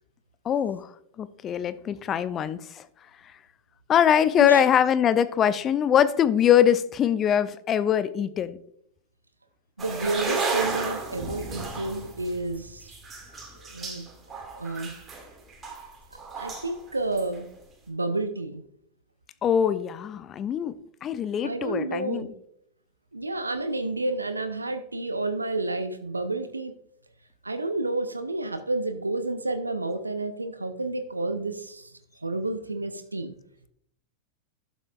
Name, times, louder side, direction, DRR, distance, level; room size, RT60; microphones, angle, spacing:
voice 1, 0.5-0.9 1.2-2.8 3.9-8.6 19.4-22.3, left 9 dB, 30° left, 0.4 m, -23 dB
sound 1, 9.8-16.8 17.2-17.4, right 3 dB, 20° right, 2.0 m, -33 dB
voice 2, 9.8-12.9 13.7-14.1 14.6-14.9 16.4-17.5 17.9-18.6 21.4-22.3 23.1-26.7 27.4-31.9 32.2-33.4, right 2 dB, 80° right, 0.6 m, -30 dB
12.0 x 7.1 x 2.4 m
figure-of-eight pair, 90°, 0 cm